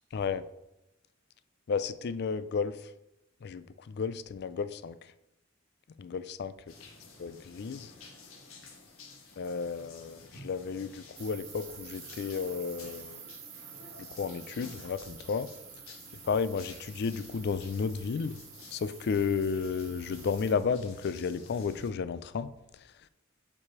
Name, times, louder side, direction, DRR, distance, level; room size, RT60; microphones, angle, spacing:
voice 1, 0.1-0.4 1.7-2.7 3.4-5.0 6.0-6.5 7.2-7.9 9.4-13.2 14.1-15.5 16.2-18.4 18.7-22.5, left 5 dB, 55° left, 14 dB, 0.4 m, -32 dB
sound 1, 6.7-21.9, left 3 dB, 80° left, 1.4 m, -52 dB
sound 2, 11.2-20.5, right 9 dB, 65° right, 1.2 m, -49 dB
7.2 x 4.8 x 4.8 m, 0.88 s
head